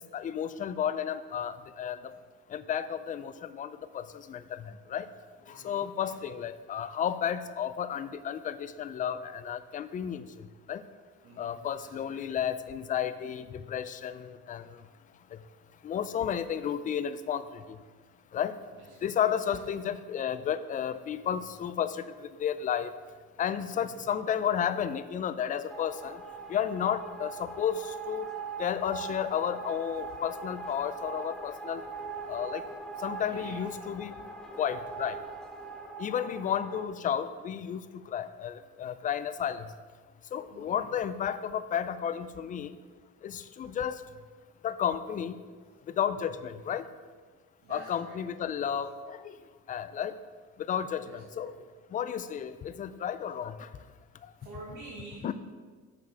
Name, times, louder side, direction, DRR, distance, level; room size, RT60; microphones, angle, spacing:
voice 1, 0.0-2.1 2.5-5.1 5.5-10.8 11.4-14.8 15.8-17.8 18.3-18.5 19.0-22.9 23.4-26.2 26.5-28.3 28.6-31.8 32.3-32.6 33.0-34.1 34.5-35.2 36.0-37.8 38.1-39.7 40.3-42.8 43.2-44.0 44.6-45.4 45.9-46.8 47.7-49.4 49.7-50.2 50.7-51.5 51.9-53.7 55.2-55.3, left 8 dB, 25° left, 13 dB, 0.3 m, -32 dB
voice 2, 5.5-6.1 11.2-12.2 16.5-16.6 18.8-19.0 19.5-19.6 23.7-24.0 33.3-33.6 34.1-34.2 40.5-40.8 46.6-46.7 47.6-48.1 51.0-51.5 54.4-55.3, right 2 dB, 80° right, -6 dB, 1.8 m, -48 dB
sound 1, 25.7-36.9, right 4 dB, ahead, 0.7 m, -41 dB
7.1 x 6.6 x 4.9 m, 1.5 s
cardioid pair, 145°, 30 cm